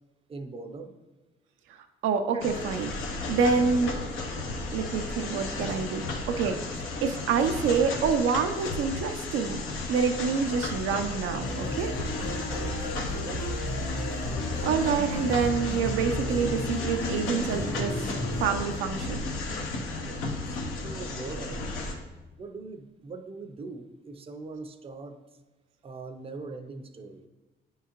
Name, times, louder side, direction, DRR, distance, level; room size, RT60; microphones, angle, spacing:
voice 1, 0.3-0.9 2.3-2.4 12.6-13.6 20.0-21.6 22.4-25.2 25.8-27.3, right 3 dB, 30° right, 7 dB, 0.5 m, -41 dB
voice 2, 2.0-3.9 4.7-9.6 9.9-12.0 14.6-19.2, right 5 dB, 85° right, 6 dB, 0.5 m, -27 dB
sound 1, 2.4-22.0, left 3 dB, 85° left, 0.8 m, -34 dB
sound 2, 11.4-18.6, left 1 dB, 60° left, 1.5 m, -33 dB
9.0 x 3.7 x 2.9 m, 1.2 s
cardioid pair, 90°, 20 cm